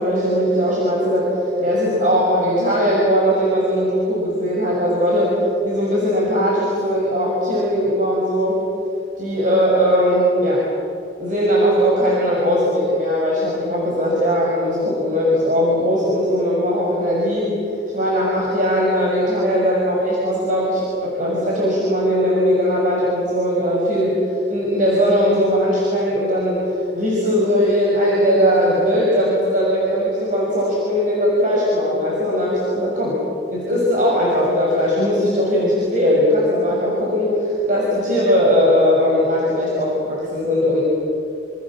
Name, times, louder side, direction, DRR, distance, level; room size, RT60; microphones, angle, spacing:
voice 1, 0.0-5.4 5.6-8.7 9.2-10.6 11.2-17.5 17.9-33.1 33.5-40.8, equal, 45° right, -4 dB, 6.1 m, -19 dB
27.5 x 27.5 x 7.5 m, 2.7 s
head